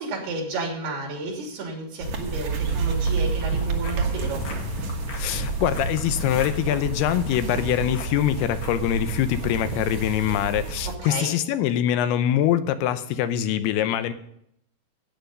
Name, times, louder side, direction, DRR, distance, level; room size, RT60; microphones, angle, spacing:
voice 1, 0.0-4.4 11.0-11.4, right 2 dB, 85° right, 0 dB, 5.1 m, -32 dB
sound 1, 2.0-11.0, right 4 dB, 60° right, 2.0 m, -29 dB
sound 2, 2.2-9.9, left 2 dB, 70° left, 3.7 m, -40 dB
voice 2, 5.2-14.1, left 10 dB, 85° left, 11 dB, 2.8 m, -24 dB
14.0 x 9.2 x 5.3 m, 0.72 s
omnidirectional pair, 4.5 m